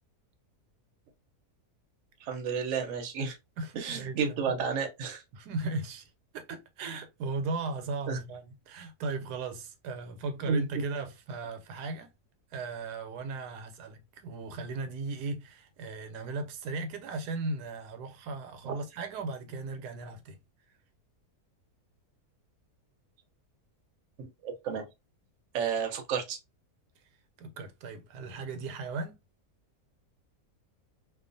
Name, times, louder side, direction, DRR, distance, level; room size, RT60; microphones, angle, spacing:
voice 1, 2.2-3.4 3.8-5.2 8.1-8.2 10.5-10.6 18.6-18.7 24.2-24.8 25.5-26.4, right 5 dB, 65° right, 0.9 m, -31 dB
voice 2, 3.6-4.5 5.3-12.1 12.5-20.4 27.4-29.2, right 3 dB, 90° right, 1.2 m, -37 dB
2.4 x 2.4 x 2.5 m
omnidirectional pair, 1.7 m